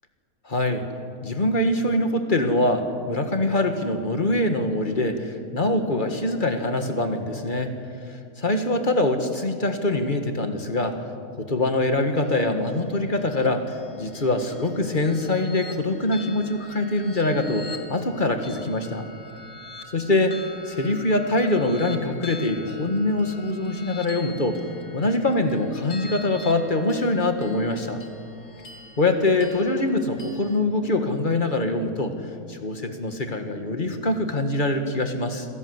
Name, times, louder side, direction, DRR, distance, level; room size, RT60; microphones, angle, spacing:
voice 1, 0.5-0.9 1.2-7.7 8.1-11.0 11.4-13.7 14.0-19.1 19.9-20.4 20.7-24.6 24.9-28.0 29.0-32.1 32.5-35.5, left 2 dB, 35° left, 6 dB, 1.8 m, -24 dB
sound 1, 12.2-30.6, left 2 dB, 65° left, 2.2 m, -44 dB
26.0 x 17.5 x 8.0 m, 2.5 s
omnidirectional pair, 1.6 m